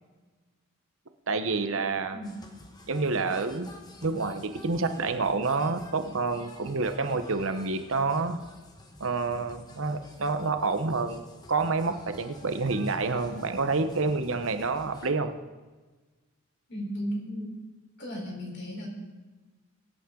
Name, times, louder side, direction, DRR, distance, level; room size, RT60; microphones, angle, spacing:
voice 1, 1.3-2.2 2.9-3.7 4.0-8.4 9.0-11.2 11.5-15.3, right 3 dB, 65° right, 8 dB, 0.9 m, -28 dB
sound 1, 2.2-15.1, left 1 dB, 20° left, 1.2 m, -50 dB
voice 2, 16.7-17.6 18.0-18.9, equal, 50° left, -1 dB, 4.2 m, -35 dB
22.5 x 8.8 x 3.8 m, 1.3 s
head